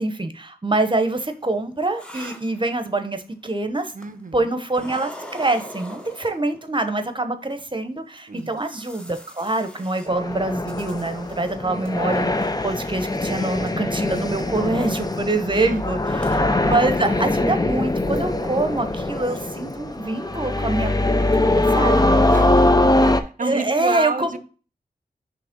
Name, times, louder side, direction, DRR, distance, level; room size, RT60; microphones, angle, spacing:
voice 1, 0.0-3.9 4.3-22.2 23.4-24.3, right 2 dB, 30° right, 8 dB, 0.9 m, -25 dB
sound 1, 1.3-3.2 3.9-4.4 4.7-6.9 7.5-7.6 8.2-11.6 11.9-12.5 12.8-15.0 15.4-15.6 15.9-16.0 16.2-16.4, equal, 5° left, 0.9 m, -42 dB
voice 2, 3.9-4.6 8.3-8.6 15.5-15.8 22.3-22.9 23.2-24.4, right 3 dB, 50° right, 12 dB, 0.6 m, -30 dB
sound 2, 10.1-23.2, left 2 dB, 25° left, 0.5 m, -22 dB
5.7 x 3.3 x 5.2 m, 0.37 s
wide cardioid pair, 65°, 17 cm